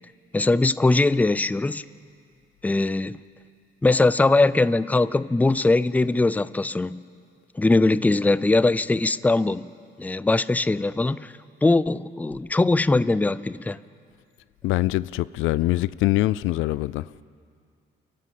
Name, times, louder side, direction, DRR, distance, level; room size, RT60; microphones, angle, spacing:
voice 1, 0.3-1.8 2.6-3.2 3.8-7.0 7.5-9.7 10.0-11.3 11.6-13.8, left 2 dB, 10° left, 0.4 m, -21 dB
voice 2, 14.6-17.1, left 17 dB, 85° left, 0.4 m, -23 dB
28.5 x 12.0 x 7.7 m
cardioid pair, 90°, 20 cm